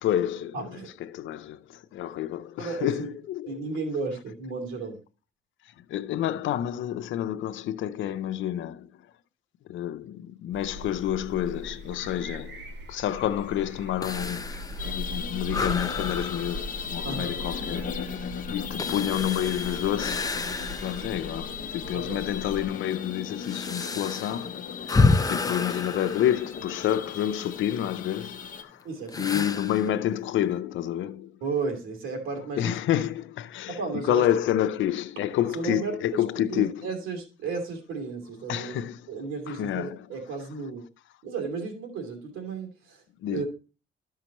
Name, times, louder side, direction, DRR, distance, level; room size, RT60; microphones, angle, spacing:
voice 1, 0.0-3.6 5.7-8.9 9.7-18.2 18.5-20.4 20.8-28.9 29.2-31.4 32.6-36.9 38.5-39.1 39.5-40.0 43.2-43.4, left 11 dB, 75° left, 0.6 m, -29 dB
voice 2, 0.5-0.9 2.6-3.1 3.5-5.0 17.0-17.4 21.0-21.1 21.9-22.2 28.8-29.3 31.4-32.7 33.7-34.2 35.5-38.7 39.1-40.8 41.2-43.0 43.3-43.5, right 4 dB, 85° right, 2.8 m, -34 dB
sound 1, 10.5-22.7, equal, 60° right, 1.3 m, -40 dB
sound 2, 14.0-21.2 21.7-21.8 22.5-27.1 29.1-29.9, left 3 dB, 20° left, 0.6 m, -30 dB
sound 3, 14.8-28.6, left 6 dB, 45° left, 1.0 m, -37 dB
12.5 x 5.7 x 3.0 m
cardioid pair, 90°, 20 cm